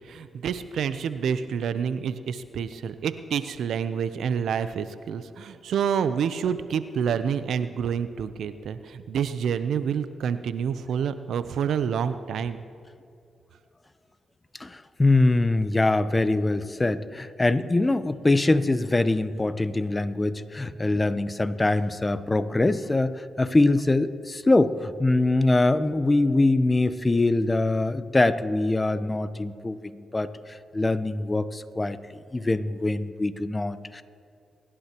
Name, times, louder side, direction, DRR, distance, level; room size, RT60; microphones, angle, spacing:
voice 1, 0.1-12.6, right 7 dB, 75° right, 12 dB, 0.7 m, -28 dB
voice 2, 14.6-30.3 30.7-32.0 32.3-34.0, left 2 dB, 25° left, 13 dB, 0.8 m, -23 dB
27.5 x 11.5 x 3.0 m, 2.4 s
supercardioid pair, 50°, 0 cm